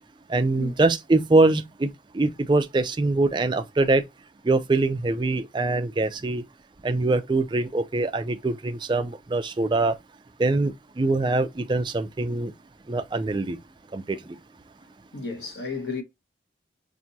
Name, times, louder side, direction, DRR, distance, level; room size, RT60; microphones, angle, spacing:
voice 1, 0.3-4.0 4.4-6.4 6.8-10.0 10.4-12.5 12.9-13.6 13.9-14.2, right 2 dB, 25° right, 0.4 m, -23 dB
voice 2, 15.1-16.0, left 4 dB, 65° left, 1.4 m, -32 dB
5.8 x 2.7 x 2.7 m
head